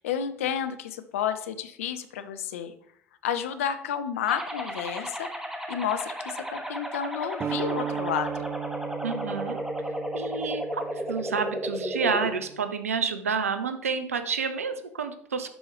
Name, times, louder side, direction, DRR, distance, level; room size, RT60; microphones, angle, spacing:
voice 1, 0.0-2.7 3.2-5.3 5.7-8.4, left 8 dB, 75° left, 10 dB, 0.6 m, -31 dB
sound 1, 4.3-12.3, equal, 5° right, 1.4 m, -34 dB
sound 2, 7.4-12.6, right 9 dB, 35° right, 0.4 m, -37 dB
voice 2, 9.0-9.6 10.1-15.5, right 5 dB, 85° right, 10 dB, 0.5 m, -29 dB
11.5 x 4.6 x 3.0 m, 0.68 s
figure-of-eight pair, 60°, 8 cm